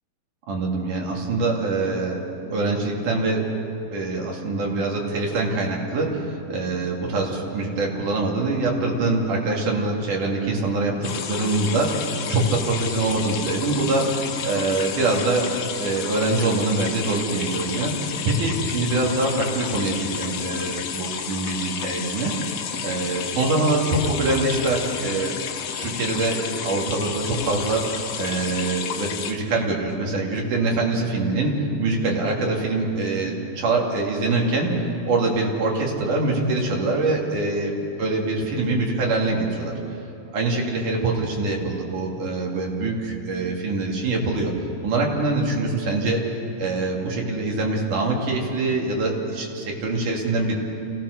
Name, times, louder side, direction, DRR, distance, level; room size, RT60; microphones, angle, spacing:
voice 1, 0.5-2.2 2.5-3.5 3.9-11.9 12.3-15.5 15.8-22.6 22.8-25.4 25.8-34.7 35.1-39.8 40.3-44.5 44.8-46.2 46.6-50.6, right 2 dB, 55° right, -2 dB, 4.1 m, -24 dB
sound 1, 11.0-29.3, left 8 dB, 85° left, 1.4 m, -31 dB
27.0 x 17.5 x 6.5 m, 2.9 s
omnidirectional pair, 4.4 m